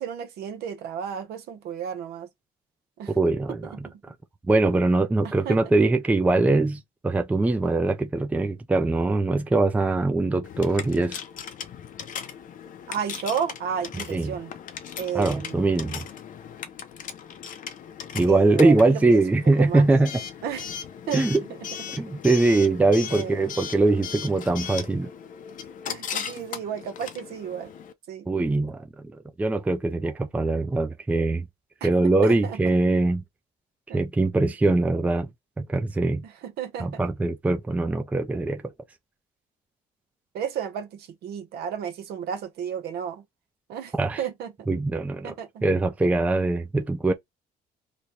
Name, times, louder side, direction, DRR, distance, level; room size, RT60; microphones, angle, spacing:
voice 1, 0.0-2.3 3.0-3.1 3.5-3.6 5.2-5.6 12.9-14.5 15.0-15.8 18.3-19.2 19.6-19.9 20.4-20.8 21.1-21.2 22.1-22.2 23.1-23.4 25.8-27.7 28.1-28.3 31.8-31.9 32.2-32.6 33.9-34.0 36.2-37.0 40.3-43.2 43.7-44.5 45.2-45.7, right 8 dB, 70° right, 0.8 m, -32 dB
voice 2, 3.2-3.9 4.5-11.2 14.1-14.4 15.1-16.1 18.1-20.1 21.1-21.4 21.9-25.1 28.3-29.1 29.4-31.5 31.8-33.2 33.9-35.3 35.6-36.2 36.8-38.6 44.0-44.2 44.7-45.3 45.6-47.1, right 2 dB, 10° right, 0.4 m, -22 dB
Coin (dropping) / Alarm, 10.4-27.9, left 8 dB, 50° left, 0.6 m, -38 dB
3.0 x 2.2 x 4.0 m
cardioid pair, 110°, 17 cm